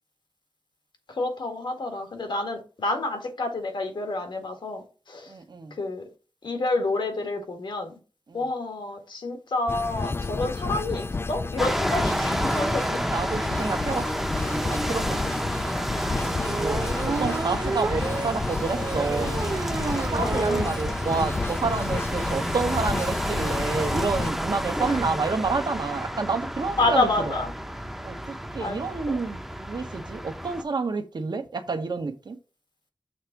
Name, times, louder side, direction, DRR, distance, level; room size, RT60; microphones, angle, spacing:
voice 1, 1.1-5.3 5.7-6.1 6.4-7.9 8.3-13.1 20.2-20.7 24.8-25.0 26.8-27.5 28.6-28.8 29.1-29.2, left 2 dB, 80° left, 1.7 m, -29 dB
voice 2, 5.3-5.7 8.3-8.4 13.1-15.5 16.1-19.4 19.8-27.3 28.0-32.4, right 4 dB, 65° right, 1.1 m, -29 dB
sound 1, 9.7-24.3, left 3 dB, 30° left, 0.3 m, -31 dB
sound 2, 11.6-30.6, equal, 5° right, 0.7 m, -30 dB
sound 3, 16.4-20.7 21.1-21.2 21.5-21.6 21.8-22.0, right 4 dB, 45° right, 0.5 m, -31 dB
6.5 x 3.4 x 5.9 m
wide cardioid pair, 85°, 8 cm